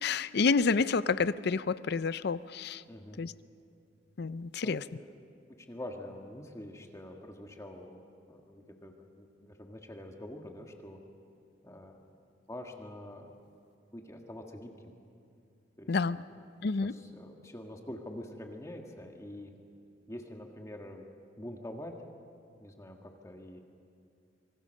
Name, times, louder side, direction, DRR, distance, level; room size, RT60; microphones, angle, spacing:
voice 1, 0.0-2.8 3.2-3.3 4.2-4.8 15.9-16.2 16.6-16.9, left 4 dB, 60° left, 16 dB, 0.5 m, -29 dB
voice 2, 2.9-3.2 4.6-5.1 5.7-11.0 11.6-11.9 12.5-13.3 13.9-14.9 15.8-16.2 16.8-19.5 20.1-21.0 21.4-21.9 22.6-23.6, left 1 dB, 15° left, 2 dB, 1.7 m, -45 dB
25.5 x 23.0 x 6.5 m, 2.5 s
head